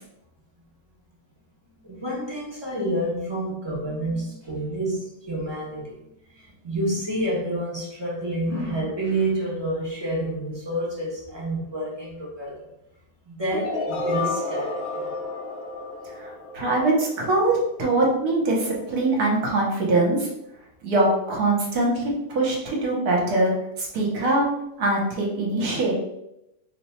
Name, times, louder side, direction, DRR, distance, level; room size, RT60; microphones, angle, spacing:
voice 1, 1.8-12.7 13.3-15.1, right 1 dB, 35° right, -5 dB, 0.4 m, -29 dB
sound 1, 13.5-17.4, left 3 dB, 65° left, 1.0 m, -31 dB
voice 2, 16.2-20.3 20.8-24.4 24.8-25.9, right 2 dB, 70° right, -2 dB, 1.3 m, -23 dB
3.0 x 2.2 x 4.1 m, 0.85 s
omnidirectional pair, 1.8 m